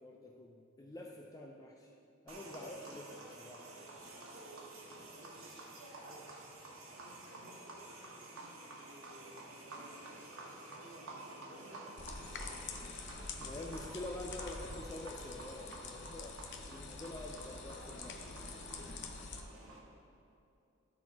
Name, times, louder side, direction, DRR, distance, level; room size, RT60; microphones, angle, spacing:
voice 1, 0.0-1.9 2.2-3.6 13.4-16.4 16.7-18.2, left 2 dB, 15° left, 0 dB, 0.4 m, -47 dB
sound 1, 2.3-19.8, right 2 dB, 90° right, 1.2 m, -50 dB
voice 2, 5.2-12.2, right 1 dB, 30° right, -5 dB, 1.5 m, -59 dB
sound 2, 12.0-19.4, left 4 dB, 55° left, 0.6 m, -46 dB
12.0 x 4.1 x 4.1 m, 2.6 s
head